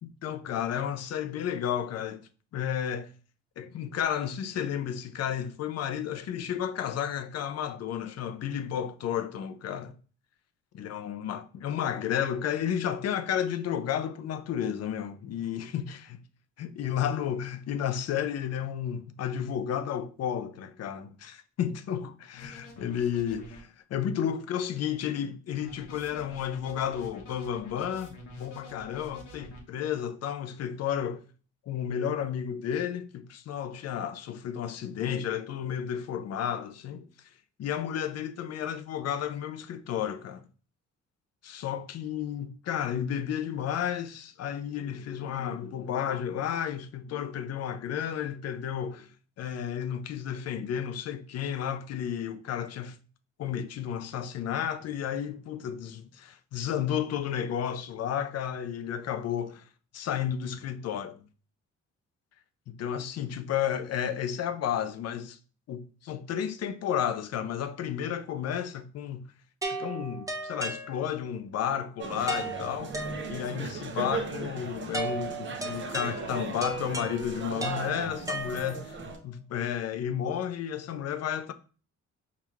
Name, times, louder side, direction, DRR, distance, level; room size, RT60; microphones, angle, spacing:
voice 1, 0.0-2.2 2.5-3.1 3.6-9.9 10.7-16.1 16.6-23.5 23.9-31.2 31.7-37.1 37.6-40.4 41.4-49.1 49.4-53.0 53.4-59.6 59.9-61.2 62.7-65.4 65.7-65.8 66.1-69.3 69.7-72.9 73.3-78.9 79.2-81.5, left 9 dB, 55° left, 0.5 m, -32 dB
sound 1, 22.4-23.6 25.6-29.6, equal, 80° left, 1.1 m, -48 dB
sound 2, 69.6-71.4 72.3-73.7 74.9-79.0, right 3 dB, 10° right, 0.8 m, -36 dB
sound 3, 72.0-79.2, right 4 dB, 40° right, 0.8 m, -38 dB
4.6 x 2.4 x 3.4 m
cardioid pair, 90°, 30 cm